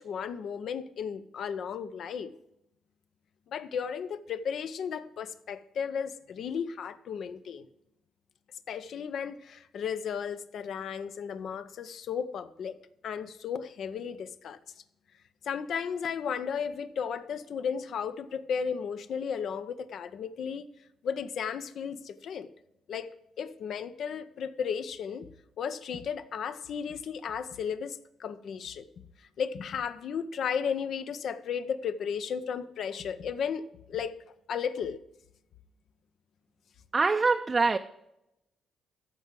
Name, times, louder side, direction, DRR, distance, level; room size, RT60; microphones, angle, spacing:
voice 1, 0.0-2.3 3.5-7.7 8.7-12.8 13.0-14.6 15.4-20.7 21.0-22.5 22.9-25.3 25.6-28.8 29.4-34.1 34.5-35.0, left 7 dB, 65° left, 0.7 m, -34 dB
voice 2, 36.9-37.8, right 4 dB, 30° right, 0.5 m, -24 dB
14.0 x 4.8 x 7.5 m
cardioid pair, 90°, 0 cm